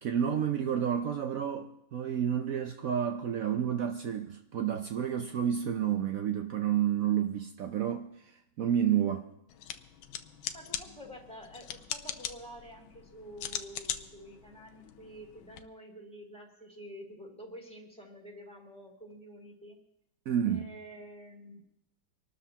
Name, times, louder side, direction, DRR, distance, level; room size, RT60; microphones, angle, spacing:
voice 1, 0.0-8.1 8.6-9.3 20.3-20.7, right 9 dB, 75° right, 0.8 m, -30 dB
sound 1, 9.5-15.6, left 10 dB, 75° left, 1.5 m, -41 dB
voice 2, 10.5-19.8 20.5-21.6, equal, 5° left, 2.8 m, -49 dB
26.0 x 13.0 x 2.9 m
omnidirectional pair, 2.3 m